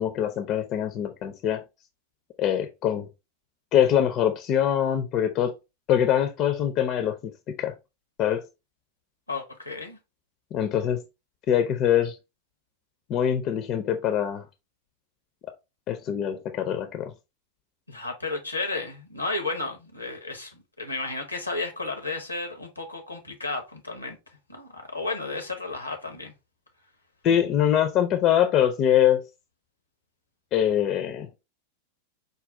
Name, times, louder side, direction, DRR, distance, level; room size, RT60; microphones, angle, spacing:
voice 1, 0.0-1.6 2.4-3.1 3.7-5.5 5.9-7.7 8.2-8.4 10.5-11.0 11.5-12.1 13.1-14.4 15.9-17.1 27.2-29.2 30.5-31.3, left 10 dB, 35° left, 0.5 m, -23 dB
voice 2, 9.3-10.0 17.9-24.2 24.5-26.3, left 3 dB, 85° left, 0.8 m, -33 dB
5.0 x 2.3 x 3.3 m
figure-of-eight pair, 90°, 0 cm